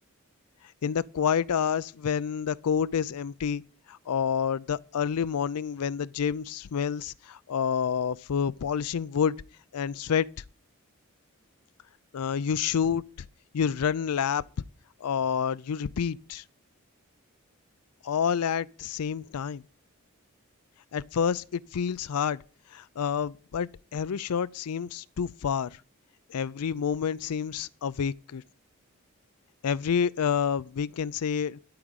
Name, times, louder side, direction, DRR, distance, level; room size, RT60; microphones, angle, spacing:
voice 1, 0.8-3.6 3.9-9.3 9.7-10.3 12.1-13.0 13.5-14.4 15.0-16.4 18.0-19.6 20.9-22.4 22.7-25.7 26.3-28.4 29.6-31.6, left 7 dB, 90° left, 0.4 m, -28 dB
12.5 x 4.9 x 8.7 m
head